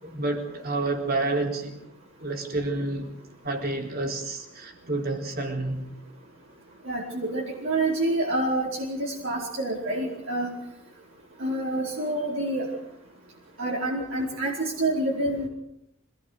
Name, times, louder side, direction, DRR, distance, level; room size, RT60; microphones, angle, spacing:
voice 1, 0.0-1.8 2.2-3.1 3.4-5.9, right 2 dB, 45° right, 3 dB, 4.2 m, -29 dB
voice 2, 6.9-10.5 11.4-12.7 13.6-15.5, right 2 dB, 65° right, -4 dB, 4.7 m, -27 dB
26.0 x 19.5 x 6.6 m, 0.77 s
head